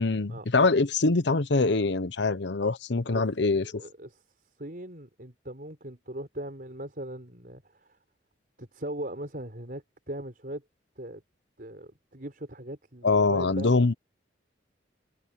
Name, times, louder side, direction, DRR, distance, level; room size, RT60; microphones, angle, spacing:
voice 1, 0.0-3.8 13.0-13.9, left 3 dB, 70° left, 0.9 m, -24 dB
voice 2, 3.8-4.2 4.6-8.0 8.6-10.6 11.0-11.2 11.6-13.7, right 1 dB, 50° right, 5.0 m, -39 dB
head